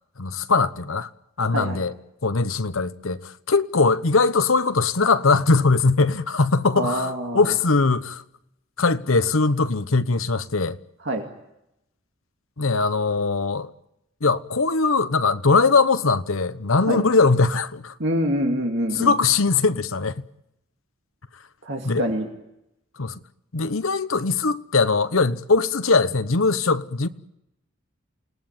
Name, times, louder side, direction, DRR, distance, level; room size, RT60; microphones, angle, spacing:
voice 1, 0.2-1.1 1.4-1.9 2.2-8.2 8.8-10.8 12.6-13.7 14.2-17.9 19.0-20.2 21.8-22.0 23.0-23.2 23.5-27.1, left 4 dB, 85° left, 1.1 m, -21 dB
voice 2, 1.5-1.8 6.7-7.5 11.0-11.3 16.9-17.0 18.0-19.1 21.6-22.3, equal, 60° right, 2.4 m, -25 dB
28.5 x 19.0 x 9.0 m
head